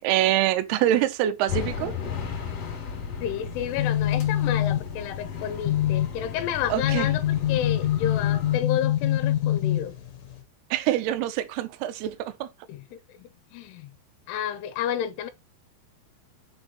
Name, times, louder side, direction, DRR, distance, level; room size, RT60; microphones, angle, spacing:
voice 1, 0.0-1.9 6.7-7.1 10.7-12.5, right 13 dB, 80° right, 2.5 m, -25 dB
sound 1, 1.5-8.6, left 7 dB, 45° left, 2.8 m, -35 dB
voice 2, 3.2-10.0 12.7-13.9 14.3-15.3, left 10 dB, 85° left, 2.6 m, -31 dB
sound 2, 3.5-10.4, left 13 dB, 60° left, 2.3 m, -26 dB
6.7 x 3.9 x 4.1 m
omnidirectional pair, 5.0 m